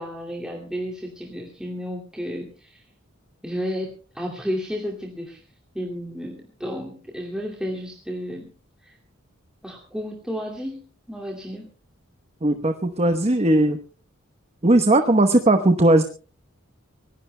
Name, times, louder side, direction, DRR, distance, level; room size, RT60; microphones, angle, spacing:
voice 1, 0.0-2.8 3.4-5.4 5.7-8.5 8.8-9.0 9.6-11.7, equal, 5° right, -2 dB, 2.4 m, -32 dB
voice 2, 12.4-13.8 14.6-16.0, right 1 dB, 30° right, 7 dB, 1.0 m, -18 dB
24.5 x 19.0 x 2.2 m, 0.37 s
head